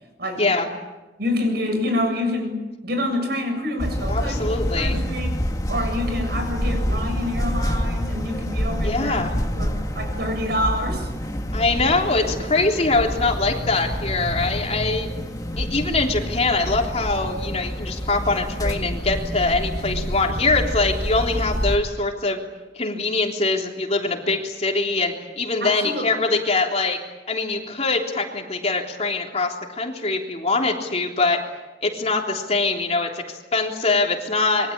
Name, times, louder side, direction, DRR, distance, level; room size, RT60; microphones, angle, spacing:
voice 1, 1.2-4.5 4.7-5.3 5.7-9.2 9.5-11.1 12.2-12.3 25.6-26.1, left 1 dB, 60° right, 5 dB, 7.4 m, -27 dB
sound 1, 3.8-21.8, equal, 20° left, 2.3 m, -27 dB
voice 2, 4.1-5.0 8.8-9.3 11.5-15.1 15.6-22.4 22.7-27.0 27.3-31.4 31.8-34.7, left 3 dB, 35° left, 1 dB, 3.5 m, -23 dB
27.0 x 23.5 x 8.8 m, 1.1 s
head